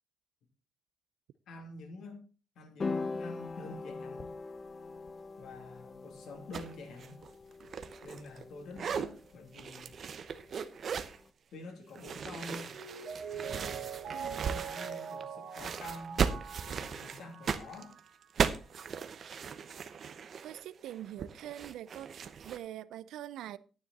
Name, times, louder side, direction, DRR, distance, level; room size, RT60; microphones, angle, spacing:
voice 1, 1.5-2.2 2.5-4.3 5.4-7.2 8.0-9.9 11.5-12.8 13.3-14.0 14.4-16.2 16.6-18.0, left 2 dB, 70° left, 2.8 m, -48 dB
sound 1, 2.8-11.2, left 3 dB, 35° left, 0.6 m, -43 dB
sound 2, 6.5-6.7 7.0-8.4 8.7-9.1 9.5-11.2 12.0-15.3 15.5-22.6, right 6 dB, 50° right, 0.8 m, -37 dB
Mallet percussion, 12.7-18.3 18.6-18.7, right 7 dB, 70° right, 1.7 m, -43 dB
voice 2, 14.1-14.5 20.4-23.6, right 12 dB, 85° right, 0.5 m, -44 dB
9.7 x 9.4 x 4.2 m
cardioid pair, 125°, 0 cm